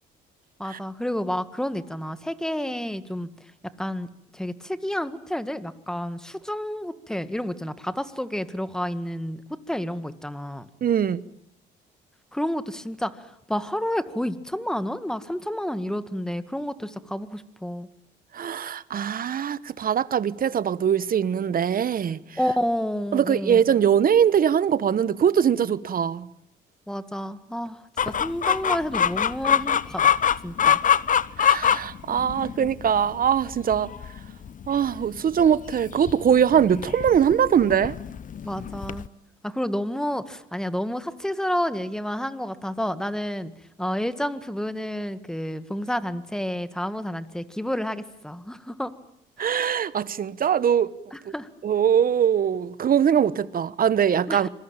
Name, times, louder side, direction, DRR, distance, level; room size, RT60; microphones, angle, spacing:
voice 1, 0.6-3.3 3.8-4.1 4.3-10.7 12.3-17.9 22.4-23.6 26.9-30.1 30.4-30.8 38.4-39.1 39.4-43.5 43.8-48.9 49.4-49.5 51.1-51.5 54.3-54.5, equal, 5° left, 1.9 m, -30 dB
voice 2, 10.8-11.2 18.3-22.2 23.1-26.3 31.4-33.9 34.7-38.0 49.4-50.9 51.6-54.5, right 8 dB, 45° right, 1.2 m, -22 dB
Chicken rooster, 28.0-39.1, left 8 dB, 40° left, 1.0 m, -25 dB
26.5 x 21.5 x 9.1 m
cardioid pair, 85°, 20 cm